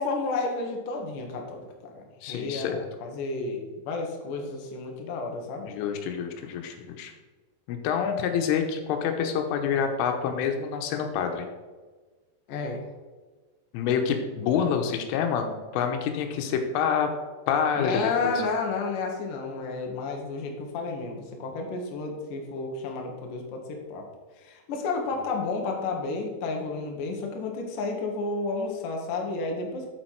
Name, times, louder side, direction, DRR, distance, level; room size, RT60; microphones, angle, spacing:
voice 1, 0.0-5.7 12.5-12.8 17.8-24.1 24.4-29.9, left 3 dB, 65° left, 2 dB, 2.1 m, -31 dB
voice 2, 2.2-2.8 5.6-7.1 7.7-11.5 13.7-17.1 17.5-17.9 18.2-18.3, left 7 dB, 90° left, 5 dB, 3.5 m, -27 dB
8.6 x 7.3 x 4.7 m, 1.3 s
omnidirectional pair, 5.6 m